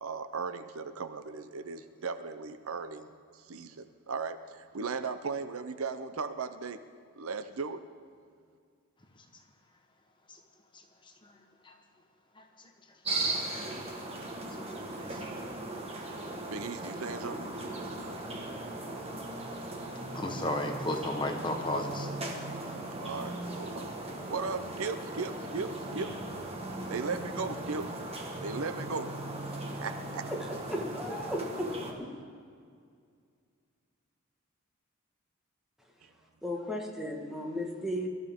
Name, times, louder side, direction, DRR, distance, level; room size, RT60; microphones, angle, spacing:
voice 1, 0.0-6.8 7.2-7.9 16.5-17.4 23.0-23.9 24.3-26.2 26.9-27.9 28.4-29.2 29.8-30.3 36.0-36.1, right 4 dB, 70° right, 10 dB, 0.7 m, -37 dB
sound 1, 13.0-31.9, right 2 dB, 30° right, 1.6 m, -38 dB
voice 2, 20.1-22.1, left 1 dB, 20° left, 3 dB, 1.2 m, -33 dB
voice 3, 30.7-32.1 36.4-38.1, left 1 dB, ahead, -1 dB, 1.7 m, -35 dB
22.5 x 13.0 x 3.7 m, 2.2 s
head